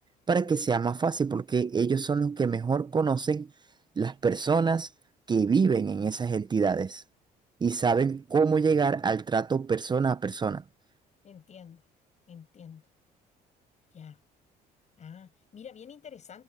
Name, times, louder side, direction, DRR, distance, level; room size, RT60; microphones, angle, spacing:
voice 1, 0.3-3.5 4.0-4.9 5.3-7.0 7.6-10.6, right 5 dB, 25° right, 0.7 m, -26 dB
voice 2, 11.2-11.8 12.3-12.8 13.9-14.2 15.0-16.4, left 7 dB, 45° left, 7.7 m, -48 dB
cardioid pair, 110°, 17 cm